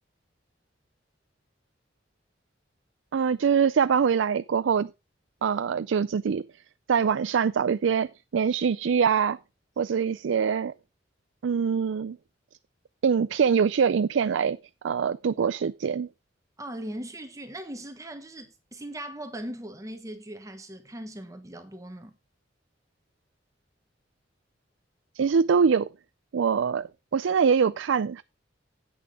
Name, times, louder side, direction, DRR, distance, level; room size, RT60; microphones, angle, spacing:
voice 1, 3.1-4.9 5.4-6.4 6.9-9.4 9.8-10.7 11.4-12.2 13.0-14.6 14.8-16.1 25.2-25.9 26.3-28.2, right 6 dB, 90° right, 0.4 m, -24 dB
voice 2, 16.6-22.2, right 1 dB, 20° right, 1.2 m, -39 dB
9.5 x 8.8 x 3.6 m
head